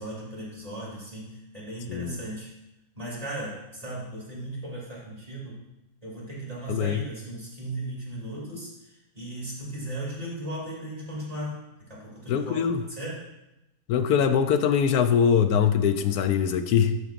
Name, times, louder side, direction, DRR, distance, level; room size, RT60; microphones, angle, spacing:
voice 1, 0.0-2.5 2.9-5.7 6.0-13.3, right 1 dB, 25° right, -6 dB, 2.4 m, -37 dB
voice 2, 6.7-7.0 12.3-12.8 13.9-17.0, left 7 dB, 80° left, 9 dB, 1.1 m, -22 dB
11.0 x 6.3 x 2.5 m, 0.93 s
omnidirectional pair, 1.7 m